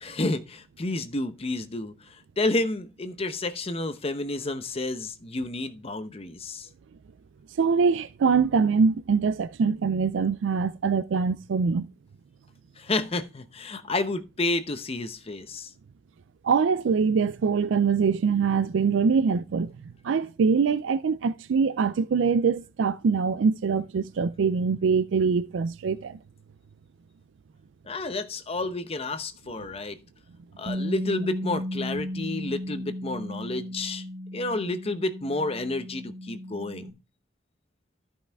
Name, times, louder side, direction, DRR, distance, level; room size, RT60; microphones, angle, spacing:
voice 1, 0.0-6.7 12.8-15.7 27.8-30.0 30.6-34.0 34.3-36.9, left 2 dB, 30° left, 0.8 m, -30 dB
voice 2, 7.6-11.9 16.4-19.7 20.0-26.2, right 5 dB, 75° right, 0.4 m, -23 dB
Bass guitar, 30.7-36.9, left 1 dB, 35° right, 1.9 m, -35 dB
13.0 x 5.5 x 3.4 m
head